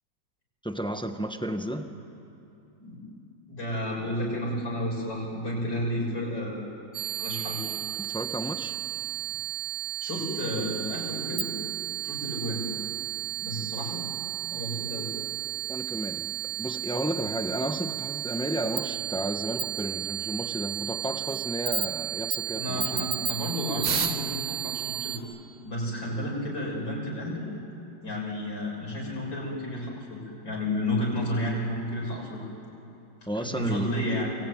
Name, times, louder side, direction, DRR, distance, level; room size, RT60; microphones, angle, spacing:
voice 1, 0.6-1.9 8.0-8.8 15.7-23.1 33.3-33.9, right 1 dB, 5° left, 6 dB, 0.7 m, -32 dB
voice 2, 3.5-6.7 7.2-7.6 10.0-11.5 12.0-12.7 13.4-14.1 14.5-15.1 22.5-25.2 25.6-27.5 28.0-32.4 33.3-34.3, left 1 dB, 65° left, -3 dB, 7.9 m, -31 dB
sound 1, 6.9-25.2, right 9 dB, 65° right, 2.1 m, -33 dB
28.5 x 22.0 x 9.4 m, 2.9 s
omnidirectional pair, 2.2 m